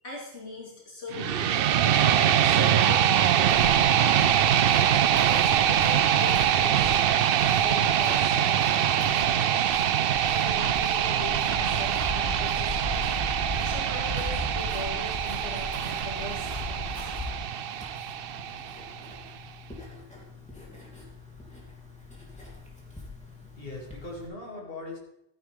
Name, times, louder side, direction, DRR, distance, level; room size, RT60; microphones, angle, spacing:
voice 1, 0.0-1.7 2.1-4.2 4.9-7.1 7.5-9.7 10.2-13.1 13.6-17.1, left 2 dB, 80° left, -3 dB, 2.5 m, -40 dB
sound 1, 1.1-19.1, right 9 dB, 65° right, 0.7 m, -24 dB
sound 2, 3.4-17.3, left 2 dB, 20° right, 4.3 m, -39 dB
Writing, 15.0-24.3, left 3 dB, 5° left, 3.0 m, -47 dB
voice 2, 22.9-25.0, left 2 dB, 55° left, -2 dB, 3.1 m, -41 dB
14.5 x 10.0 x 3.7 m, 0.82 s
omnidirectional pair, 1.1 m